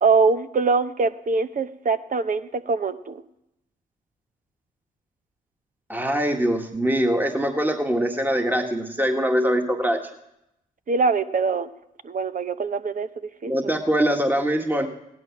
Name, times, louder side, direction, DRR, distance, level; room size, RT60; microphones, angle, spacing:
voice 1, 0.0-3.2 10.9-11.7 12.0-13.1 13.4-13.7, right 4 dB, 45° right, 10 dB, 0.9 m, -23 dB
voice 2, 5.9-10.0 13.5-14.9, equal, 10° right, 4 dB, 1.7 m, -23 dB
16.0 x 11.0 x 5.9 m, 0.83 s
hypercardioid pair, 45°, 19 cm